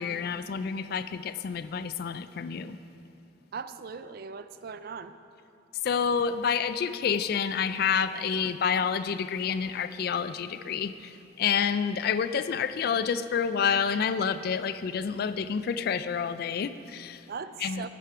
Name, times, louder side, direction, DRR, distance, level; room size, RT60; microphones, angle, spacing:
voice 1, 0.0-2.8 5.8-17.2 17.6-17.9, left 6 dB, 55° left, 13 dB, 0.3 m, -28 dB
voice 2, 3.5-5.1 17.3-17.9, right 5 dB, 55° right, 12 dB, 0.4 m, -39 dB
10.0 x 8.4 x 4.5 m, 2.8 s
head